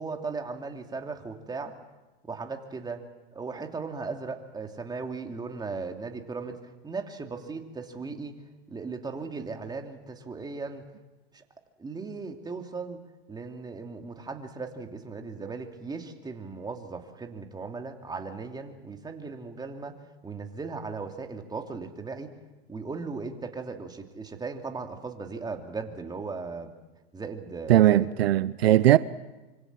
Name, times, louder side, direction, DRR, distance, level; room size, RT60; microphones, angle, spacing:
voice 1, 0.0-1.8 2.2-3.0 3.3-8.4 8.7-10.9 11.3-11.4 11.8-13.0 13.3-20.0 20.2-22.3 22.7-26.7 27.1-28.1, right 4 dB, 15° right, 2.8 m, -37 dB
voice 2, 27.7-29.0, right 13 dB, 80° right, 0.8 m, -19 dB
26.0 x 24.5 x 7.6 m
hypercardioid pair, 110°, 30 cm